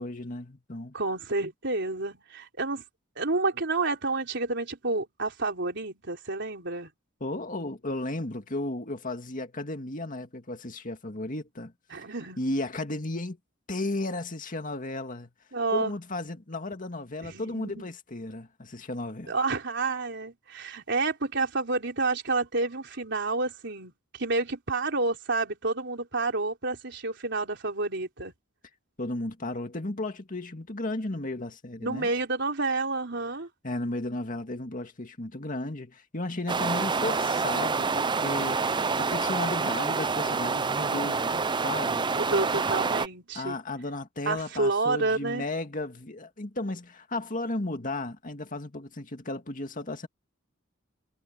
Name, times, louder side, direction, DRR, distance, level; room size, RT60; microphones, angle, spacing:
voice 1, 0.0-0.9 7.2-11.7 12.4-13.4 13.7-15.3 15.7-19.3 29.0-32.1 33.6-42.1 43.3-50.1, left 2 dB, 40° left, 2.1 m, -34 dB
voice 2, 0.9-2.8 3.2-6.9 11.9-12.4 15.5-15.9 17.2-17.8 19.3-28.3 31.8-33.5 42.1-43.6 44.3-45.5, right 3 dB, 60° right, 3.9 m, -29 dB
sound 1, 36.5-43.1, right 4 dB, 25° right, 0.6 m, -27 dB
head